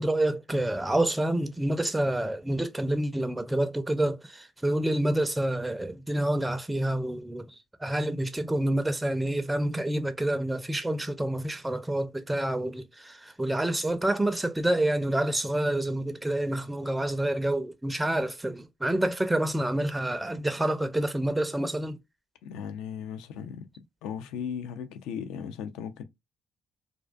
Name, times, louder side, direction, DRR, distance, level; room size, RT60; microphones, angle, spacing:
voice 1, 0.0-22.0, right 1 dB, 15° right, 0.4 m, -28 dB
voice 2, 22.4-23.7 24.0-26.0, left 7 dB, 75° left, 0.3 m, -37 dB
2.3 x 2.3 x 2.4 m
hypercardioid pair, 50°, 0 cm